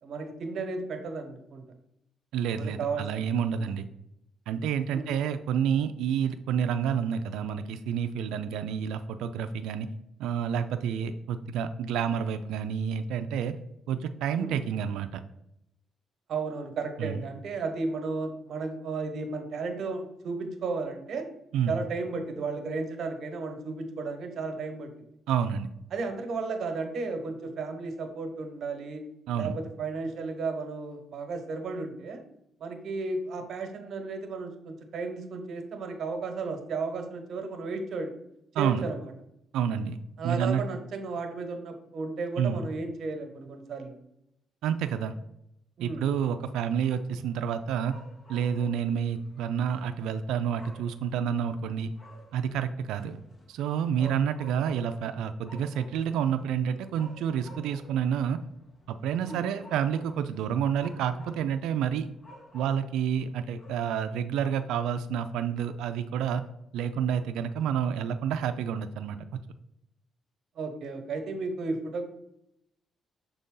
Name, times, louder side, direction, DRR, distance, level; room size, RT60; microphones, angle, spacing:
voice 1, 0.0-1.6 2.6-3.2 3.6-3.7 4.9-5.1 14.3-14.6 16.3-21.3 21.7-24.9 25.9-29.0 29.3-32.2 32.6-38.1 38.6-39.1 40.2-43.9 45.8-46.1 54.0-54.2 59.3-59.4 70.5-72.0, right 4 dB, 60° right, 5 dB, 1.1 m, -34 dB
voice 2, 2.3-3.9 4.5-9.9 10.2-13.6 13.9-15.2 17.0-17.2 21.5-21.7 25.3-25.7 29.3-29.5 38.5-38.8 39.5-40.0 40.2-40.6 42.4-42.7 44.6-45.1 45.8-48.0 48.3-51.9 52.3-53.2 53.5-58.4 58.9-62.1 62.5-66.4 66.7-69.4, right 8 dB, 90° right, 8 dB, 0.3 m, -29 dB
sound 1, 46.1-64.2, left 1 dB, 40° left, 1.6 m, -54 dB
6.6 x 4.0 x 3.7 m, 0.81 s
cardioid pair, 90°, 0 cm